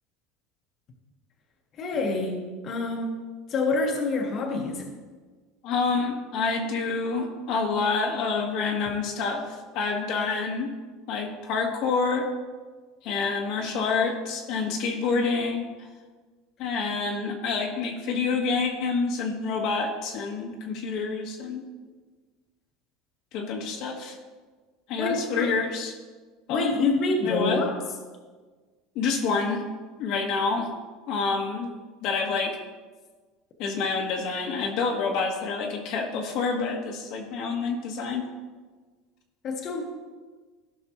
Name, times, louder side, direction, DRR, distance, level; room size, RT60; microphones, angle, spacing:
voice 1, 1.8-3.1 3.5-4.9 25.0-25.5 26.5-27.7 39.4-39.8, left 3 dB, 40° left, 0 dB, 1.4 m, -26 dB
voice 2, 5.6-10.7 11.1-12.3 13.0-15.9 16.6-21.7 23.3-24.2 24.9-25.9 26.5-26.7 27.2-27.6 28.9-29.7 30.0-30.7 31.1-31.7 32.0-32.6 33.6-38.2, left 4 dB, 60° left, 0 dB, 1.5 m, -27 dB
15.0 x 5.7 x 3.1 m, 1.4 s
supercardioid pair, 130°, 0 cm